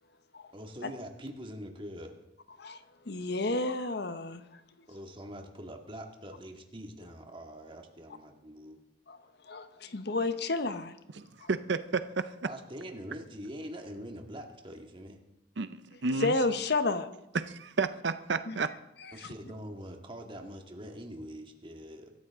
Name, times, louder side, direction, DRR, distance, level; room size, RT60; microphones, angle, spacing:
voice 1, 0.5-2.2 4.9-8.8 12.4-15.2 19.1-22.1, equal, 30° right, 2.0 m, -44 dB
voice 2, 2.6-4.4 4.8-4.9 9.1-9.2 9.4-10.9 11.4-11.5 16.2-17.1 18.5-18.6 19.2-19.3, left 3 dB, 60° left, 1.0 m, -31 dB
voice 3, 11.2-12.3 15.6-16.3 17.3-18.7, right 4 dB, 65° right, 0.7 m, -31 dB
24.0 x 13.5 x 3.8 m
head